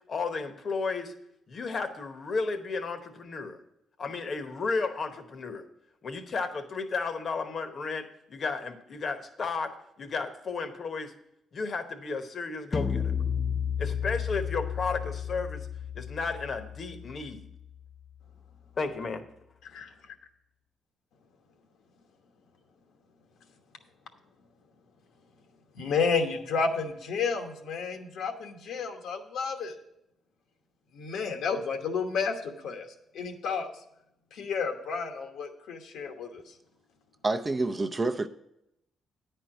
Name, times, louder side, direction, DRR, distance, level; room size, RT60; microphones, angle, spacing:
voice 1, 0.1-1.1 1.5-3.6 4.0-5.6 6.0-9.7 10.0-11.1 11.5-13.1 13.8-15.7 15.9-17.5 18.8-19.2, left 4 dB, 50° left, 1.0 m, -33 dB
sound 1, 12.7-18.1, left 7 dB, 25° left, 0.3 m, -33 dB
voice 2, 25.7-29.7 30.9-33.7 34.3-36.4, left 5 dB, 75° left, 1.1 m, -31 dB
voice 3, 37.2-38.3, right 3 dB, 25° right, 0.5 m, -28 dB
9.7 x 4.5 x 7.6 m
cardioid pair, 90°, 0 cm